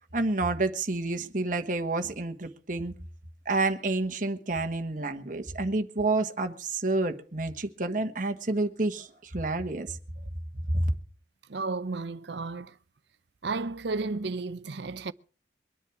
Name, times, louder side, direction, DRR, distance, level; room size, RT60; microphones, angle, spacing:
voice 1, 0.1-2.9 3.4-10.0 10.7-10.9, right 2 dB, 45° right, 1.4 m, -29 dB
voice 2, 11.5-12.7 13.4-15.1, right 3 dB, 65° right, 0.7 m, -33 dB
23.5 x 10.0 x 4.7 m
head